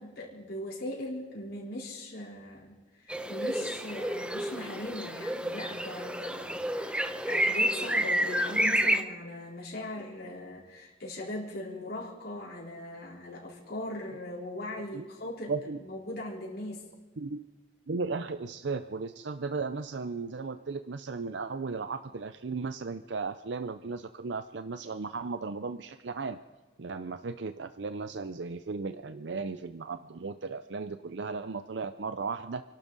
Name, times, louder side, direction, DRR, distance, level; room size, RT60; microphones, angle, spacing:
voice 1, 0.0-15.5 15.8-16.8, left 1 dB, 55° left, -5 dB, 4.1 m, -39 dB
sound 1, 3.1-9.0, right 1 dB, 5° right, 0.8 m, -30 dB
voice 2, 15.5-15.8 17.2-17.4 17.9-26.4 26.8-32.6, right 4 dB, 75° right, 10 dB, 0.6 m, -36 dB
28.5 x 12.0 x 4.1 m, 1.4 s
head